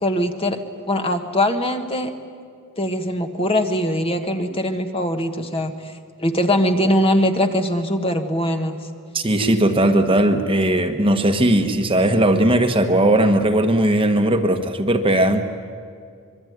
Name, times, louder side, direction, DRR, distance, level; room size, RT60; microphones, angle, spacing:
voice 1, 0.0-0.6 0.9-2.1 2.8-5.9 6.2-8.8, left 1 dB, 25° left, 6 dB, 1.5 m, -21 dB
voice 2, 9.1-15.4, right 1 dB, 25° right, 6 dB, 1.3 m, -18 dB
25.5 x 22.5 x 9.5 m, 2.3 s
head